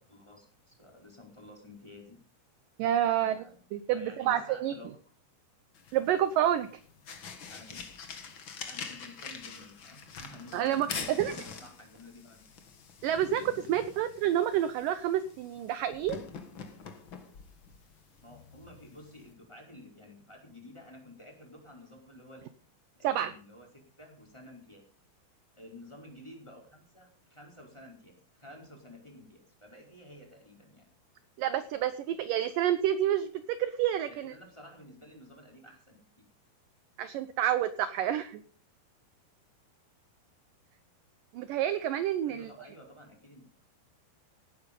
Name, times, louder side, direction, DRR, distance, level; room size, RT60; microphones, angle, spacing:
voice 1, 0.1-2.2 3.1-3.6 3.9-4.9 7.5-8.0 8.6-12.4 18.2-22.4 23.0-24.9 25.6-30.9 34.1-36.2 42.3-43.4, left 1 dB, 5° left, 0 dB, 4.5 m, -51 dB
voice 2, 2.8-3.4 3.7-4.7 5.9-6.7 10.5-11.3 13.0-16.2 23.0-23.3 31.4-34.3 37.0-38.4 41.3-42.7, right 11 dB, 75° right, 12 dB, 2.1 m, -29 dB
sound 1, 5.7-19.3, left 6 dB, 50° left, 1.5 m, -45 dB
18.0 x 9.5 x 5.3 m, 0.42 s
omnidirectional pair, 4.6 m